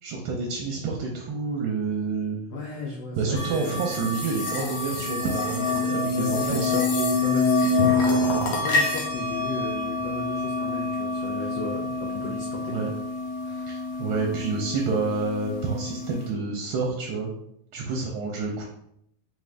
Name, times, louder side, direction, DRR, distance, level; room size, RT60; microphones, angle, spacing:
voice 1, 0.0-2.5 3.2-6.8 12.7-12.9 13.7-17.3 17.7-18.6, right 4 dB, 75° right, 0 dB, 1.4 m, -29 dB
voice 2, 2.5-3.8 6.1-12.9 13.4-13.7, left 2 dB, 85° left, 0 dB, 0.8 m, -35 dB
sound 1, 3.4-16.3, left 3 dB, 65° left, 1.4 m, -27 dB
3.7 x 3.6 x 3.2 m, 0.75 s
omnidirectional pair, 2.4 m